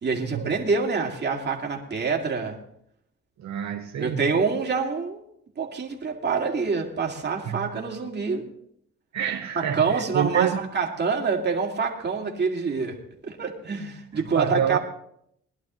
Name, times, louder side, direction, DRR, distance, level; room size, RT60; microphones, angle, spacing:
voice 1, 0.0-2.6 4.0-5.2 5.6-8.4 9.6-13.0 13.2-14.8, right 5 dB, 35° right, 2.3 m, -26 dB
voice 2, 3.4-4.2 7.5-7.7 9.1-10.6 14.3-14.8, right 9 dB, 65° right, 1.0 m, -27 dB
21.0 x 11.5 x 3.1 m
cardioid pair, 120°, 30 cm